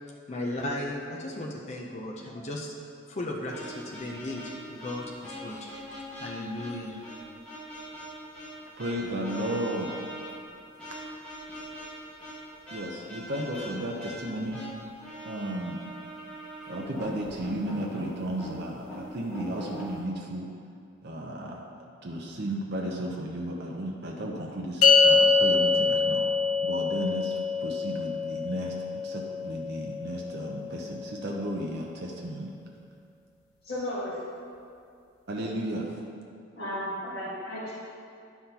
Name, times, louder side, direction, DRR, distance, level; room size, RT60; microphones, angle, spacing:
voice 1, 0.1-2.7 3.1-7.0, left 1 dB, 30° left, -1 dB, 0.6 m, -36 dB
sound 1, 3.5-20.0, equal, 5° left, 1.5 m, -42 dB
voice 2, 8.8-9.9 12.7-14.6 15.2-15.8 16.7-20.5 21.0-21.6 22.0-26.3 26.6-32.5 35.3-36.0, right 1 dB, 50° right, -1 dB, 0.6 m, -34 dB
sound 2, 24.8-31.4, left 5 dB, 90° left, 0.8 m, -25 dB
voice 3, 33.6-34.2 36.6-37.7, left 1 dB, 50° left, -13 dB, 1.7 m, -34 dB
10.5 x 5.8 x 2.8 m, 2.4 s
head